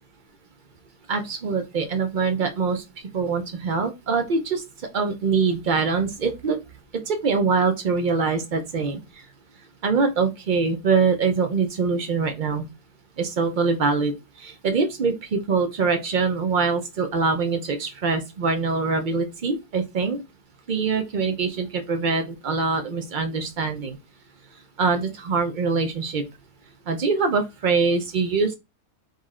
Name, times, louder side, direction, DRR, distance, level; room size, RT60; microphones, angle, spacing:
voice 1, 1.1-2.8 3.1-4.6 4.9-6.6 7.1-9.0 9.8-12.7 13.2-14.1 14.4-20.2 20.7-24.0 24.8-26.2 26.9-28.5, right 4 dB, 85° right, 6 dB, 0.4 m, -23 dB
4.1 x 3.2 x 3.6 m, 0.24 s
omnidirectional pair, 1.7 m